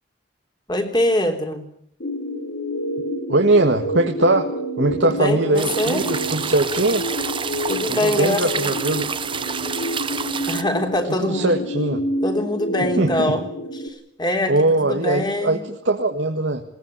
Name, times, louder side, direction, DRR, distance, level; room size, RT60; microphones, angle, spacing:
voice 1, 0.7-1.6 5.0-6.0 7.7-8.7 10.5-11.6 12.2-13.4 13.7-14.5 14.8-15.6, left 1 dB, 25° left, 5 dB, 3.5 m, -23 dB
sound 1, 2.0-13.9, equal, 70° left, 3.7 m, -28 dB
voice 2, 3.3-4.5 4.8-7.1 7.9-9.1 11.2-12.0 13.0-13.3 14.5-16.6, right 2 dB, 90° right, 4 dB, 1.9 m, -20 dB
sound 2, 5.6-10.6, right 6 dB, 30° right, 1.1 m, -28 dB
21.0 x 18.0 x 9.9 m, 0.70 s
head